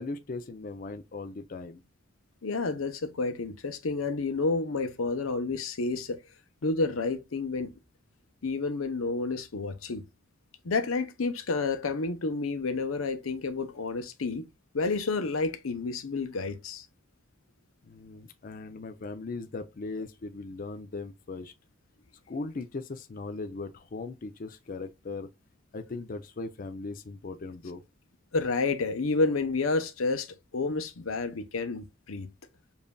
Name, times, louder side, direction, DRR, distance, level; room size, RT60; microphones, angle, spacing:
voice 1, 0.0-1.8 17.8-21.5 22.3-25.3 25.7-27.8, left 3 dB, 40° left, 0.4 m, -38 dB
voice 2, 2.4-6.2 6.6-7.7 8.4-10.0 10.6-14.4 14.7-16.9 28.3-32.3, left 3 dB, 85° left, 0.7 m, -30 dB
7.1 x 2.6 x 2.2 m
head